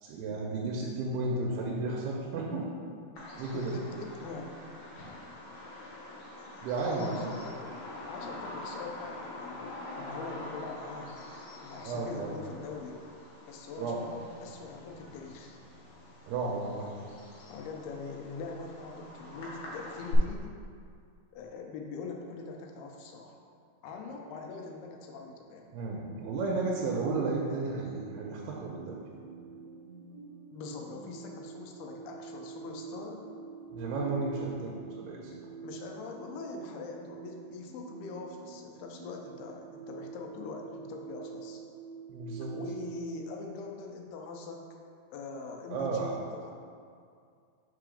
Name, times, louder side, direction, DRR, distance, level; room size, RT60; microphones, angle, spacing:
voice 1, 0.0-2.6 3.4-3.8 6.6-7.3 11.8-12.3 13.8-14.0 16.3-16.9 25.7-29.0 33.7-35.3 42.1-42.5 45.7-46.1, right 3 dB, 85° right, -3 dB, 2.6 m, -33 dB
Bird vocalization bird call bird song, 3.2-20.2, left 2 dB, 65° left, 2.1 m, -45 dB
voice 2, 3.5-4.6 6.8-7.7 8.0-11.2 11.6-13.0 13.5-15.6 17.5-20.6 21.3-23.4 23.8-25.8 30.5-33.3 35.6-41.6 42.5-44.6 45.1-46.5, left 4 dB, 80° left, 1 dB, 2.5 m, -43 dB
sound 1, 26.0-42.9, right 6 dB, 65° right, 2.3 m, -45 dB
5.8 x 3.8 x 4.9 m, 2.3 s
omnidirectional pair, 4.6 m